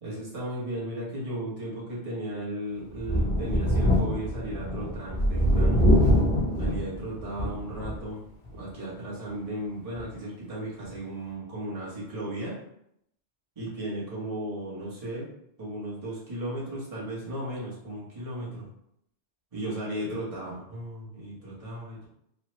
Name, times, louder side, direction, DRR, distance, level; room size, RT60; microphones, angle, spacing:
voice 1, 0.0-5.9 6.6-8.2 8.5-12.6 13.6-15.3 15.6-18.7 19.5-22.1, right 1 dB, 35° right, -7 dB, 1.1 m, -35 dB
Thunder, 3.0-8.1 8.5-8.6 10.0-10.1, equal, 55° left, 1.2 m, -24 dB
3.1 x 2.2 x 3.0 m, 0.74 s
omnidirectional pair, 1.2 m